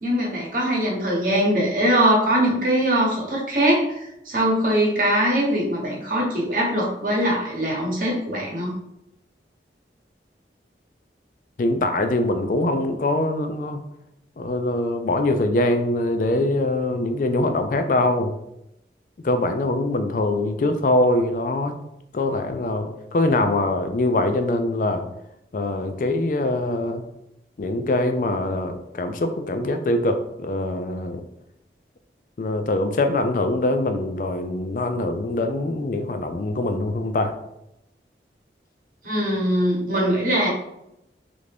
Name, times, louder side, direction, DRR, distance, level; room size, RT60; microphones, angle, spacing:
voice 1, 0.0-8.8 39.0-40.5, equal, 50° right, -2 dB, 1.0 m, -22 dB
voice 2, 11.6-13.8 14.4-18.3 19.2-21.8 22.1-25.0 25.5-27.0 27.6-31.2 32.4-37.3, left 2 dB, 45° left, 7 dB, 0.4 m, -23 dB
3.3 x 2.6 x 3.3 m, 0.83 s
head